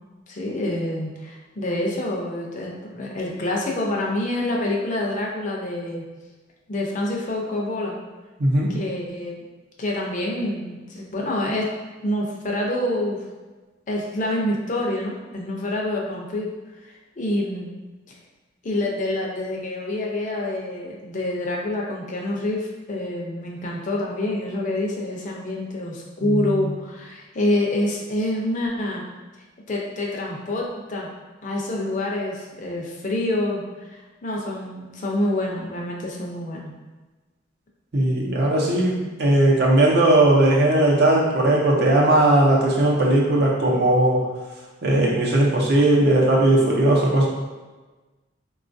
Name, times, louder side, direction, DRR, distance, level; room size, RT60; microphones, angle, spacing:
voice 1, 0.3-6.1 6.7-8.0 8.7-9.4 9.8-11.7 12.0-13.2 13.9-16.5 16.8-17.7 18.6-29.0 29.7-31.1 31.4-36.7, left 1 dB, 40° left, -2 dB, 0.5 m, -27 dB
voice 2, 8.4-8.7 26.2-26.7 37.9-44.2 44.8-47.3, right 1 dB, 60° right, -3 dB, 0.6 m, -18 dB
3.7 x 2.3 x 2.6 m, 1.2 s
head